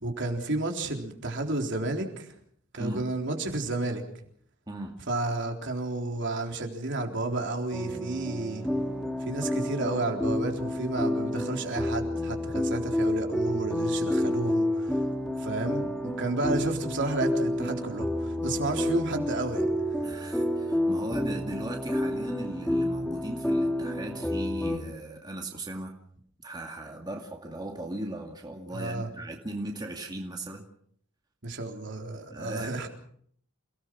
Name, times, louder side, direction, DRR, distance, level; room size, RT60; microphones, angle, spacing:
voice 1, 0.0-2.3 2.7-4.0 5.1-8.6 9.3-15.1 15.4-20.0 28.7-29.1 31.4-32.9, right 2 dB, 55° right, 2 dB, 3.8 m, -32 dB
voice 2, 4.7-5.0 20.0-25.9 26.4-30.7 32.3-32.9, right 1 dB, 20° right, 1 dB, 2.3 m, -38 dB
sound 1, 7.7-24.8, left 1 dB, 5° left, 2.5 m, -29 dB
29.0 x 18.5 x 6.1 m, 0.64 s
head